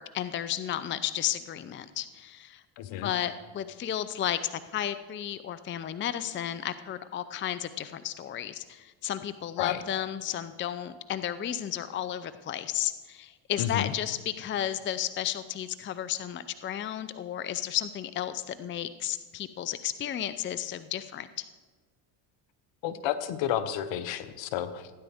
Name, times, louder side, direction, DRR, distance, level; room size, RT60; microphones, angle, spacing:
voice 1, 0.0-2.6 3.0-4.4 4.7-21.5, left 11 dB, 25° left, 13 dB, 0.5 m, -33 dB
voice 2, 2.8-3.1 9.6-9.8 13.6-13.9 22.8-24.9, left 10 dB, 65° left, 12 dB, 1.0 m, -31 dB
16.5 x 9.9 x 3.6 m, 1.3 s
supercardioid pair, 85°, 49 cm